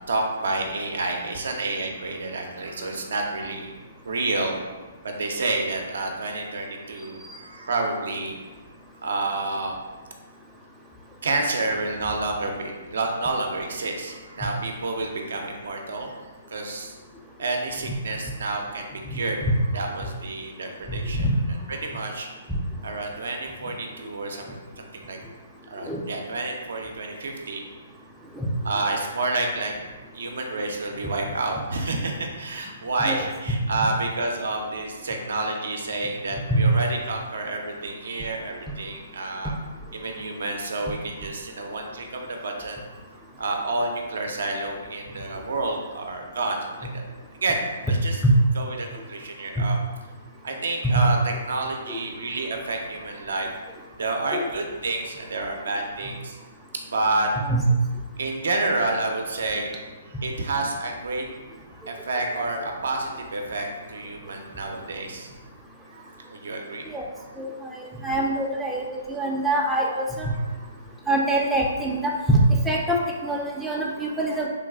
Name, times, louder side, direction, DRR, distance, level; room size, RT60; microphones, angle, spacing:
voice 1, 0.1-3.7 4.0-4.6 5.0-8.4 9.0-9.7 11.2-16.9 17.4-19.4 19.7-22.3 22.8-25.2 25.7-27.6 28.6-29.7 30.1-39.6 39.9-42.8 43.4-47.0 47.4-47.6 47.9-48.2 48.5-49.8 50.4-53.5 54.0-56.4 56.9-57.3 58.2-59.7 60.2-61.2 61.9-65.3 65.9-66.9 67.2-67.3 69.2-69.3, right 2 dB, 70° right, 2 dB, 0.4 m, -29 dB
voice 2, 67.4-70.3 71.1-74.5, right 1 dB, 5° right, -3 dB, 0.3 m, -24 dB
3.1 x 2.3 x 2.3 m, 1.3 s
hypercardioid pair, 130°, 0 cm